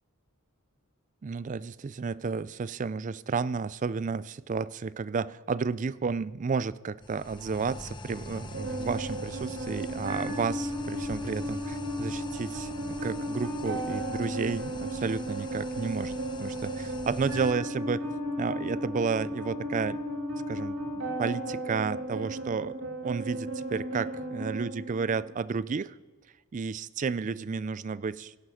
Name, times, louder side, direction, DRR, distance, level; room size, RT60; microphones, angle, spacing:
voice 1, 1.2-18.1 18.4-20.0 20.5-20.8 21.2-22.8 23.0-25.9 26.5-28.4, right 5 dB, 35° right, 18 dB, 0.3 m, -32 dB
sound 1, 7.0-17.5, left 2 dB, 20° left, 0.8 m, -43 dB
sound 2, 8.5-25.5, right 1 dB, 65° right, 2.6 m, -35 dB
17.0 x 11.0 x 5.7 m, 1.3 s
head